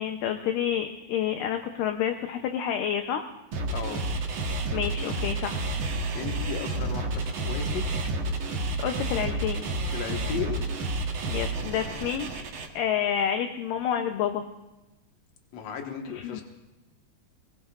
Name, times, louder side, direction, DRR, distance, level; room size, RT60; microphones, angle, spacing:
voice 1, 0.0-3.3 4.7-5.6 8.8-9.7 11.3-14.4 16.1-16.4, left 9 dB, 75° left, 6 dB, 2.0 m, -29 dB
sound 1, 3.5-12.7, right 2 dB, 80° right, 1.2 m, -30 dB
voice 2, 3.7-4.0 6.2-7.8 9.9-10.6 15.5-16.4, left 7 dB, 55° left, 3 dB, 2.1 m, -35 dB
23.0 x 20.5 x 2.5 m, 1.0 s
omnidirectional pair, 4.5 m